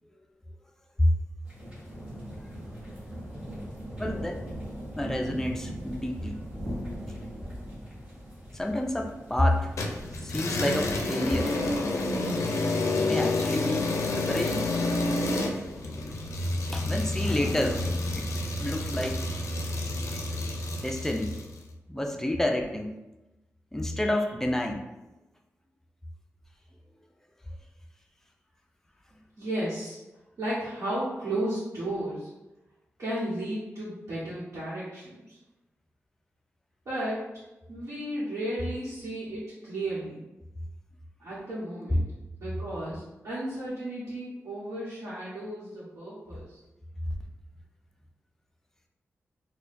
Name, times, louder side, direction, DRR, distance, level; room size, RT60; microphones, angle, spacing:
sound 1, 1.4-19.6, equal, 20° right, 1.4 m, -42 dB
voice 1, 4.0-4.4 5.0-6.4 8.5-9.7 10.2-11.5 13.0-14.7 16.7-18.3 18.6-19.2 20.8-21.3 21.9-22.9 23.7-24.8 47.1-47.2, left 1 dB, 10° left, 2 dB, 0.3 m, -29 dB
sound 2, 9.8-21.5, left 2 dB, 75° left, 0.4 m, -29 dB
sound 3, 16.6-16.9 17.2-19.9, left 1 dB, 35° left, 0.7 m, -43 dB
voice 2, 29.4-30.0 30.4-32.3 33.0-35.4 36.8-37.4 37.7-40.2 41.2-42.0 42.4-46.6, right 1 dB, 70° right, -10 dB, 1.0 m, -34 dB
4.4 x 2.2 x 2.5 m, 1.0 s
wide cardioid pair, 155°, 5 cm